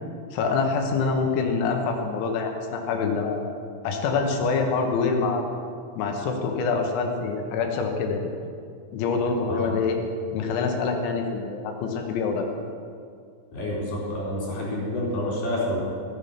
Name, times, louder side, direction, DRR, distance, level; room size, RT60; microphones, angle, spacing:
voice 1, 0.3-3.4 3.8-5.6 6.0-8.3 8.9-10.0 10.3-12.5, left 4 dB, 80° left, 3 dB, 3.5 m, -25 dB
voice 2, 13.5-15.8, left 1 dB, 50° left, -5 dB, 5.2 m, -28 dB
16.5 x 8.9 x 5.8 m, 2.3 s
omnidirectional pair, 5.4 m